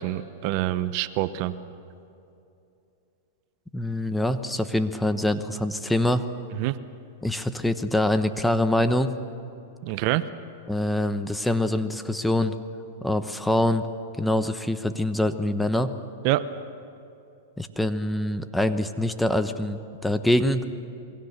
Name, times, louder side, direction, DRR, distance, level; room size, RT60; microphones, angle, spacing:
voice 1, 0.0-1.6 6.6-6.8 9.8-10.2 16.2-16.5, right 15 dB, 50° right, 13 dB, 0.9 m, -26 dB
voice 2, 3.7-6.2 7.2-9.2 10.7-12.5 13.0-13.9 14.2-16.0 17.6-20.7, left 1 dB, 5° left, 9 dB, 1.1 m, -24 dB
27.5 x 23.0 x 6.7 m, 2.7 s
hypercardioid pair, 125°, 0 cm